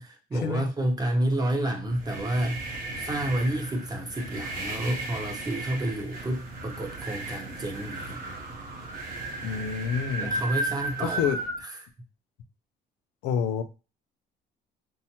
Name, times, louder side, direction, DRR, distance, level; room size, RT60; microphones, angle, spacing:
voice 1, 0.0-8.2 10.2-11.3 11.6-11.8, right 1 dB, 25° right, 3 dB, 0.9 m, -30 dB
sound 1, 1.8-11.6, right 2 dB, 55° right, 0.8 m, -35 dB
voice 2, 9.4-10.4 11.0-11.4 13.2-13.6, left 7 dB, 90° left, 9 dB, 0.5 m, -28 dB
5.3 x 2.1 x 2.8 m, 0.32 s
cardioid pair, 110°, 17 cm